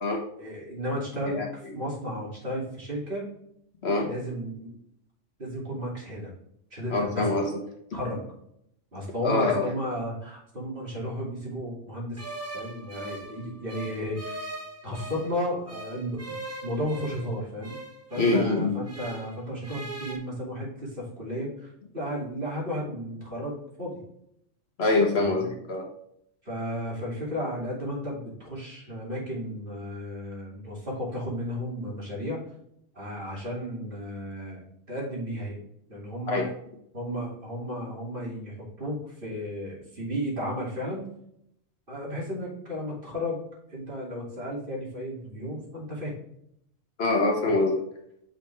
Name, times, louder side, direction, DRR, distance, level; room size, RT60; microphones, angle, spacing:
voice 1, 0.4-3.2 4.0-4.8 5.4-6.3 6.7-7.4 7.9-8.2 8.9-12.2 12.5-14.5 14.8-16.2 16.6-17.8 18.1-24.0 25.1-25.5 26.4-32.4 32.9-34.6 34.9-35.6 35.9-36.5 36.9-41.1 41.9-43.4 43.7-46.1, equal, 40° right, -5 dB, 2.9 m, -33 dB
voice 2, 6.9-7.5 9.2-9.6 18.2-18.8 24.8-25.9 36.3-36.5 47.0-47.8, left 2 dB, 55° left, 2 dB, 1.3 m, -24 dB
sound 1, 12.2-15.3 15.7-19.4 19.6-20.2, right 2 dB, 15° right, 0.9 m, -40 dB
5.9 x 5.7 x 3.3 m, 0.74 s
omnidirectional pair, 1.4 m